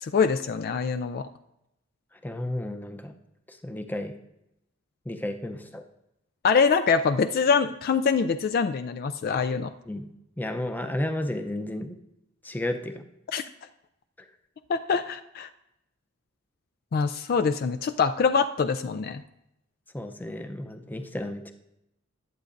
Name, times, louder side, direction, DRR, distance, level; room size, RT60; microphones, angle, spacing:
voice 1, 0.0-1.3 6.4-9.7 13.3-13.4 14.7-15.5 16.9-19.2, left 5 dB, 50° left, 9 dB, 0.3 m, -24 dB
voice 2, 2.2-3.1 3.5-4.2 5.1-5.8 9.9-12.0 12.4-13.0 14.2-14.3 19.9-21.5, left 1 dB, 10° left, 6 dB, 0.6 m, -33 dB
20.0 x 8.1 x 2.6 m, 0.87 s
head